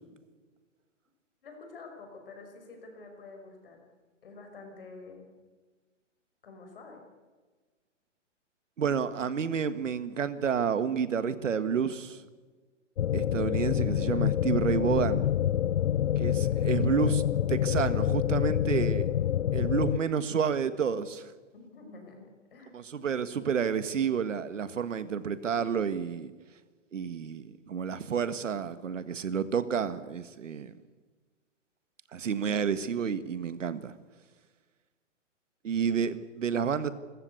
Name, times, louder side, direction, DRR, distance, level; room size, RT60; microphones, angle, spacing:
voice 1, 1.4-3.8 4.2-5.3 6.4-7.0 21.5-22.7, left 3 dB, 45° left, 3 dB, 5.5 m, -48 dB
voice 2, 8.8-12.2 13.1-15.3 16.2-17.2 17.5-19.1 19.5-21.3 22.7-26.3 26.9-30.7 32.1-33.9 35.6-36.9, right 7 dB, 80° right, 13 dB, 1.7 m, -30 dB
sound 1, 13.0-20.0, left 11 dB, 70° left, 0.6 m, -27 dB
27.5 x 14.5 x 8.3 m, 1.4 s
hypercardioid pair, 180°, 37 cm